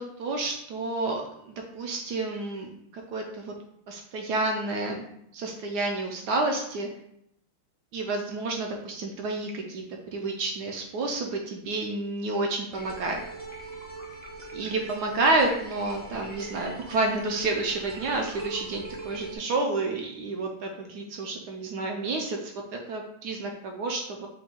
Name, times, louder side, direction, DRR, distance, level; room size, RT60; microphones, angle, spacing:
voice 1, 0.0-3.5 3.9-5.0 5.3-6.9 7.9-9.8 10.1-13.2 14.5-24.3, right 2 dB, 70° right, 2 dB, 1.0 m, -30 dB
sound 1, 12.7-19.4, right 3 dB, 50° right, 0.7 m, -41 dB
5.4 x 2.2 x 4.2 m, 0.75 s
omnidirectional pair, 2.2 m